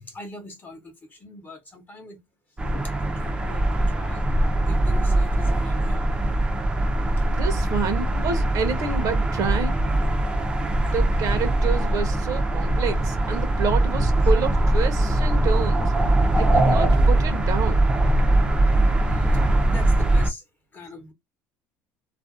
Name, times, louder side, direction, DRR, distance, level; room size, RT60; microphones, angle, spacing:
voice 1, 0.0-2.2 2.7-4.2 4.7-6.1 10.8-10.9 19.1-19.4 19.7-20.4 20.7-21.1, left 2 dB, 25° left, 0.8 m, -42 dB
sound 1, 2.6-20.3, right 1 dB, 10° right, 0.5 m, -21 dB
voice 2, 7.3-9.8 10.9-15.9 16.4-17.9, right 5 dB, 50° right, 0.7 m, -28 dB
2.4 x 2.2 x 2.4 m
cardioid pair, 125°, 7 cm